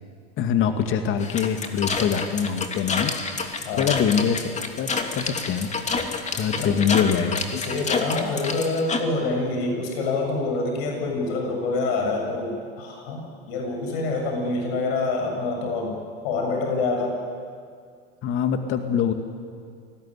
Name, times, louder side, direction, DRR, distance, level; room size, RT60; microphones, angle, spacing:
voice 1, 0.4-5.8 6.3-7.6 18.2-19.1, left 7 dB, 40° left, 6 dB, 2.3 m, -24 dB
sound 1, 1.2-9.0, left 4 dB, 20° left, 2.9 m, -29 dB
voice 2, 7.7-16.0 16.2-17.2, left 3 dB, 65° left, 2 dB, 7.4 m, -26 dB
28.0 x 20.0 x 10.0 m, 2.2 s
hypercardioid pair, 95°, 31 cm